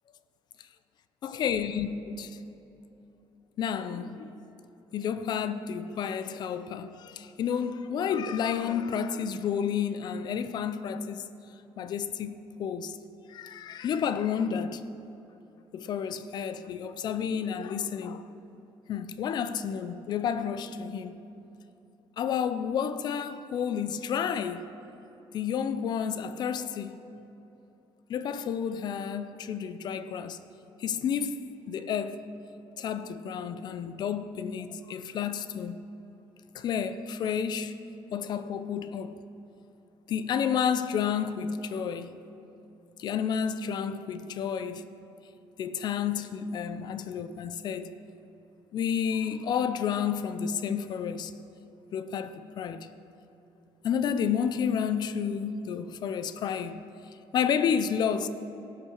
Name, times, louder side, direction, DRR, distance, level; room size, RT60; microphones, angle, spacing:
voice 1, 1.2-2.4 3.6-4.5 4.9-11.3 11.8-13.0 13.3-14.9 15.7-18.2 18.9-21.2 22.2-24.7 25.3-27.0 28.1-30.4 30.8-32.2 32.8-35.8 36.5-37.8 38.1-39.1 40.1-42.2 43.0-44.8 45.6-47.9 48.7-51.3 51.9-52.9 53.8-56.9 57.3-58.3, left 7 dB, 45° left, 0.5 m, -31 dB
17.0 x 6.0 x 6.4 m
cardioid pair, 175°, 10 cm